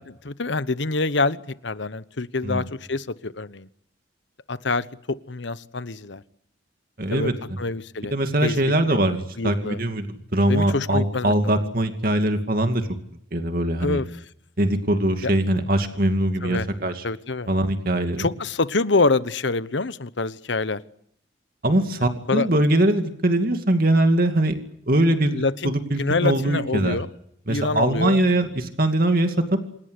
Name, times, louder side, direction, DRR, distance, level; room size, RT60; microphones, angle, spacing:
voice 1, 0.0-3.7 4.5-6.2 7.1-7.3 7.6-8.1 8.4-8.6 9.4-9.8 10.5-11.6 13.8-14.1 15.2-15.3 16.4-16.7 17.0-17.5 18.2-20.8 22.3-22.5 25.3-25.7 26.0-27.1 27.5-28.2, left 3 dB, 70° left, 15 dB, 1.0 m, -26 dB
voice 2, 7.0-7.6 8.1-12.9 13.3-14.0 14.6-17.0 17.5-18.3 21.6-24.6 24.9-27.0 27.5-29.6, right 1 dB, 50° right, 6 dB, 2.5 m, -22 dB
28.0 x 18.0 x 9.8 m, 0.72 s
head